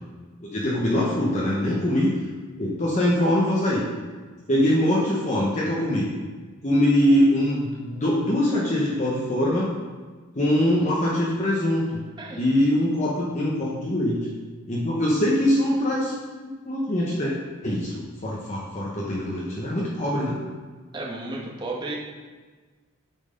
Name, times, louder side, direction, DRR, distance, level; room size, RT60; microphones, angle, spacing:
voice 1, 0.4-2.1 2.6-3.9 4.5-6.1 6.6-9.7 10.4-11.8 12.4-14.2 14.7-16.1 16.6-17.3 17.6-20.4, left 1 dB, 35° left, -5 dB, 1.0 m, -23 dB
voice 2, 20.9-22.0, right 2 dB, 20° right, -3 dB, 1.2 m, -33 dB
8.9 x 4.5 x 5.2 m, 1.4 s
head